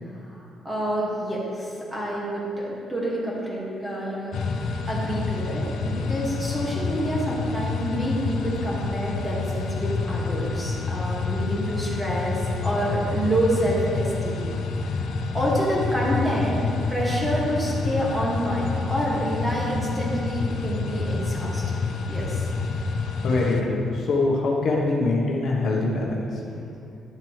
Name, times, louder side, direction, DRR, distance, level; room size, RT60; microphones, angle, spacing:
voice 1, 0.0-14.5 14.8-14.9 15.3-16.6 16.9-22.5, equal, 10° right, -5 dB, 1.9 m, -28 dB
sound 1, 4.3-23.6, left 4 dB, 70° left, 0.6 m, -28 dB
voice 2, 23.2-26.4, left 2 dB, 55° left, -2 dB, 1.1 m, -23 dB
11.0 x 7.5 x 3.2 m, 2.6 s
cardioid pair, 145°, 0 cm